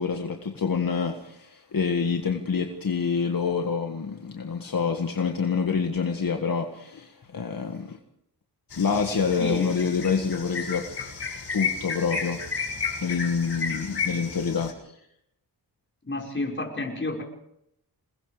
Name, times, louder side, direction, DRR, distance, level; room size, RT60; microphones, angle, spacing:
voice 1, 0.0-8.0 8.8-10.9 11.5-12.4 13.0-14.9, left 5 dB, 55° left, 3 dB, 1.9 m, -27 dB
sound 1, 8.7-14.7, left 5 dB, 80° left, 6.5 m, -32 dB
voice 2, 9.4-9.7 16.1-17.2, left 2 dB, 30° left, 0 dB, 5.4 m, -30 dB
28.0 x 21.5 x 5.0 m, 0.77 s
wide cardioid pair, 120°, 40 cm